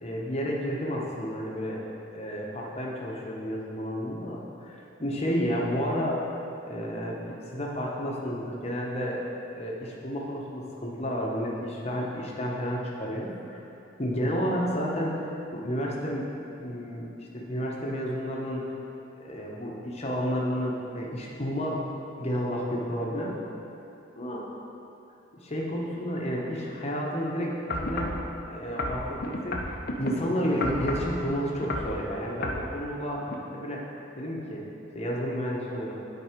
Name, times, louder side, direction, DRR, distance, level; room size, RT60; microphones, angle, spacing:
voice 1, 0.0-1.8 2.1-6.3 6.7-9.2 9.5-13.6 14.0-16.3 16.6-17.1 17.3-18.6 19.2-21.8 22.2-23.3 24.2-24.4 25.4-28.2 28.5-33.3 33.5-33.8 34.2-34.6 34.9-35.9, equal, 30° left, -3 dB, 1.0 m, -31 dB
sound 1, 27.7-28.2 28.8-30.1 30.6-31.1 31.6-31.9 32.4-32.6 33.3-33.4, left 1 dB, 50° left, 0.6 m, -31 dB
8.5 x 4.1 x 5.1 m, 2.9 s
head